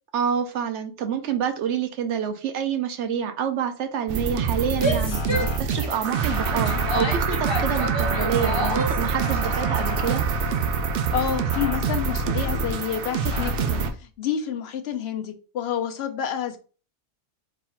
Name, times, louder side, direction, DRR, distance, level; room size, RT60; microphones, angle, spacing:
voice 1, 0.1-10.2, right 8 dB, 80° right, 7 dB, 0.9 m, -27 dB
sound 1, 4.1-13.9, right 5 dB, 65° right, 0.7 m, -25 dB
Female speech woman speaking / Yell, 4.7-9.0, left 1 dB, 30° left, 0.5 m, -30 dB
Motor vehicle (road) / Siren, 5.1-5.6 6.3-6.9 8.1-8.6 9.2-10.2 11.5-11.8 13.3-13.5, left 3 dB, 85° left, 1.2 m, -36 dB
voice 2, 11.1-16.6, left 9 dB, 70° left, 7 dB, 0.8 m, -29 dB
3.8 x 2.4 x 4.2 m, 0.37 s
omnidirectional pair, 1.2 m